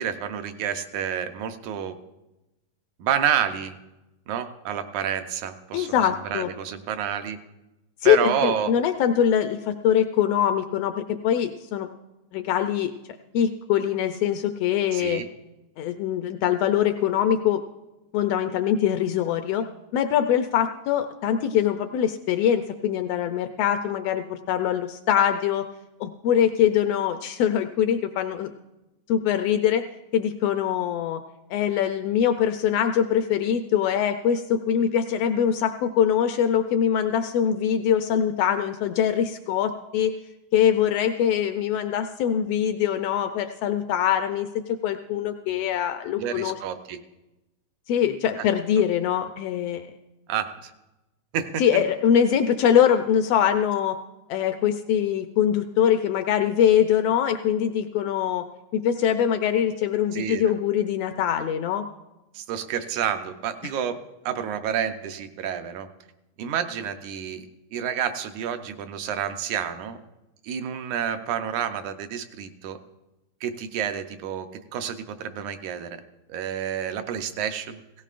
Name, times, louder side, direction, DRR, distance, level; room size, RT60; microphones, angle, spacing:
voice 1, 0.0-2.0 3.0-3.8 4.3-6.0 6.3-7.4 8.0-8.7 14.9-15.3 46.2-47.0 48.4-48.5 50.3-50.7 51.3-51.6 60.1-60.4 62.3-64.0 64.3-65.9 66.4-67.5 67.7-70.0 70.4-72.8 73.4-74.5 74.7-76.0 76.3-77.8, right 8 dB, 80° right, 8 dB, 2.1 m, -29 dB
voice 2, 5.7-6.5 8.0-11.9 12.3-12.9 13.3-15.2 15.8-17.6 18.1-19.6 19.9-25.7 26.0-28.5 29.1-29.8 30.1-31.2 31.5-40.1 40.5-44.5 44.8-46.5 47.9-49.9 51.6-54.0 54.3-58.5 58.7-61.9, left 9 dB, 90° left, 8 dB, 1.4 m, -23 dB
17.0 x 16.0 x 2.5 m, 0.99 s
omnidirectional pair, 3.4 m